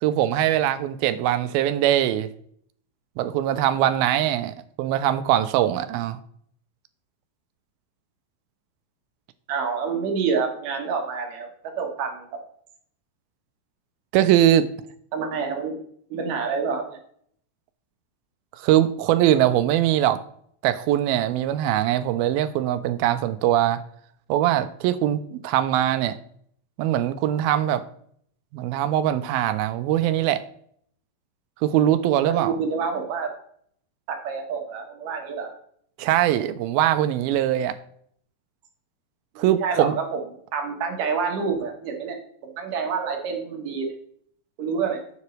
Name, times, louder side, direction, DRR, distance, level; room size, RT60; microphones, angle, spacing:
voice 1, 0.0-2.3 3.2-6.2 14.1-14.7 18.6-20.2 20.6-23.8 24.3-26.2 26.8-27.8 28.5-30.4 31.6-32.5 36.0-37.7 39.4-40.0, right 12 dB, 85° right, 2.4 m, -22 dB
voice 2, 9.5-11.5 11.8-12.4 15.1-15.8 16.1-17.0 32.3-33.3 34.1-35.5 39.4-40.2 40.5-42.2 42.4-43.9 44.6-45.0, right 5 dB, 65° right, 2.8 m, -27 dB
9.7 x 7.7 x 3.2 m
omnidirectional pair, 4.3 m